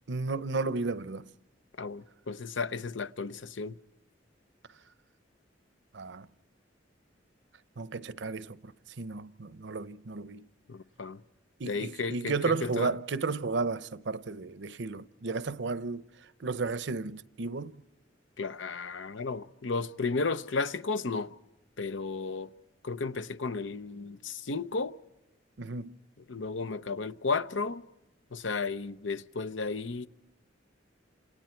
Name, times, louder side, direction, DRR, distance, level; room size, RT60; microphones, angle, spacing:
voice 1, 0.1-1.3 5.9-6.3 7.8-8.7 9.0-10.5 11.6-16.1 16.4-17.8 25.6-26.0, right 4 dB, 70° right, 0.7 m, -33 dB
voice 2, 1.8-3.8 10.7-11.2 11.6-12.9 18.4-21.3 21.8-22.5 22.8-25.0 26.3-27.8 28.3-30.1, left 4 dB, 85° left, 0.7 m, -33 dB
28.0 x 27.5 x 4.5 m
head